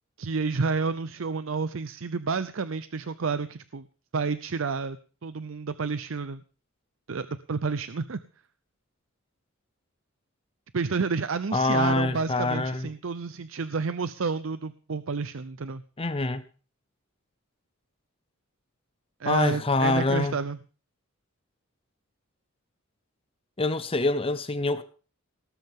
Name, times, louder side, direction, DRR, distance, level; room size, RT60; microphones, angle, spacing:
voice 1, 0.2-3.9 4.1-6.4 7.1-8.2 10.7-15.8 19.2-20.6, right 4 dB, 70° right, 0.6 m, -30 dB
voice 2, 11.5-12.9 16.0-16.4 19.2-20.4 23.6-24.8, left 2 dB, 25° left, 0.8 m, -25 dB
18.5 x 13.5 x 3.7 m
head